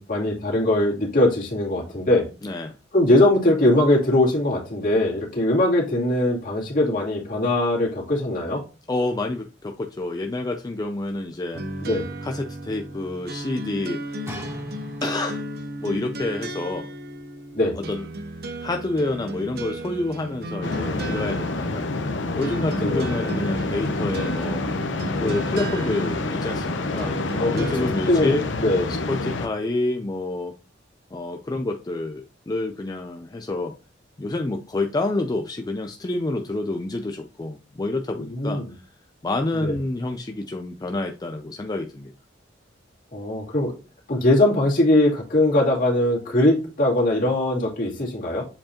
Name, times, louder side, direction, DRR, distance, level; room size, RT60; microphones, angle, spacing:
voice 1, 0.0-2.3 2.9-8.6 11.8-12.0 17.5-17.8 22.8-23.1 27.4-28.9 38.2-38.7 39.6-39.7 43.1-43.7 44.1-48.4, left 1 dB, 50° left, -3 dB, 2.6 m, -21 dB
voice 2, 2.4-2.7 8.9-11.6 12.2-14.5 15.0-15.4 15.8-16.9 17.8-18.1 18.6-21.9 22.3-24.7 25.2-28.4 28.9-30.6 31.1-33.7 34.2-38.8 39.2-42.1, left 2 dB, 20° left, 4 dB, 0.4 m, -28 dB
sound 1, 11.5-27.9, right 1 dB, 55° right, 0.7 m, -35 dB
sound 2, 14.3-15.5 16.3-16.4, equal, 15° right, 1.9 m, -38 dB
sound 3, 20.6-29.5, left 2 dB, 80° left, 0.8 m, -27 dB
7.5 x 4.6 x 2.9 m, 0.32 s
head